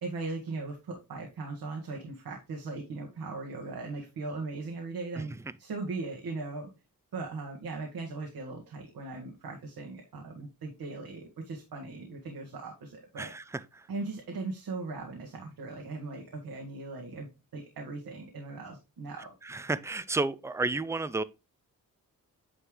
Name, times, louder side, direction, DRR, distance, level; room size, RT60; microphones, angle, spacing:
voice 1, 0.0-5.3 5.6-6.7 7.1-13.3 13.9-19.3, right 3 dB, 85° right, 1.7 m, -39 dB
voice 2, 19.4-21.2, right 3 dB, 10° right, 0.3 m, -31 dB
9.5 x 3.2 x 3.7 m
wide cardioid pair, 145°, 35 cm